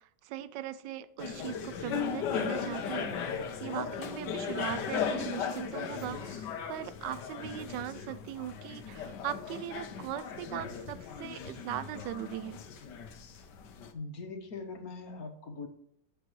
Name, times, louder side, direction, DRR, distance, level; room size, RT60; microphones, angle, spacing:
voice 1, 0.0-12.6, right 12 dB, 80° right, 15 dB, 1.2 m, -40 dB
sound 1, 1.2-13.9, left 7 dB, 75° left, 1.5 m, -37 dB
voice 2, 13.9-15.7, left 3 dB, 55° left, 5 dB, 1.7 m, -41 dB
8.4 x 7.4 x 3.1 m, 0.71 s
omnidirectional pair, 1.9 m